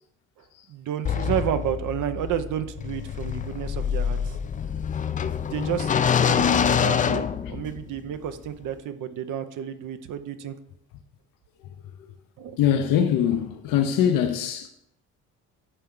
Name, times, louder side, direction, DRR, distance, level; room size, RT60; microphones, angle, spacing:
voice 1, 0.7-4.4 5.0-5.9 6.2-10.6 12.4-12.6, right 10 dB, 65° right, 0.7 m, -31 dB
sound 1, 1.1-8.0, left 7 dB, 25° left, 0.3 m, -25 dB
voice 2, 12.6-14.7, left 9 dB, 80° left, 0.7 m, -22 dB
11.0 x 4.5 x 3.8 m
cardioid pair, 100°, 33 cm